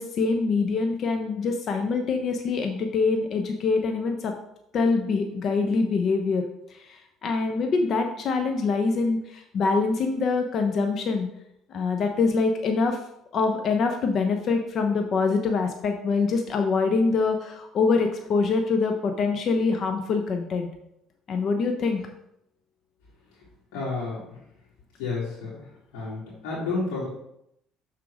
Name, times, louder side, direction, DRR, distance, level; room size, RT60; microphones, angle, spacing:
voice 1, 0.0-4.3 4.7-6.4 6.7-11.3 11.7-13.0 13.3-20.7 21.3-22.0, left 4 dB, 55° left, 4 dB, 0.8 m, -24 dB
voice 2, 23.7-24.2 25.0-25.6 25.9-27.1, left 3 dB, 90° left, -8 dB, 2.9 m, -30 dB
6.2 x 4.5 x 4.9 m, 0.78 s
supercardioid pair, 95°, 0 cm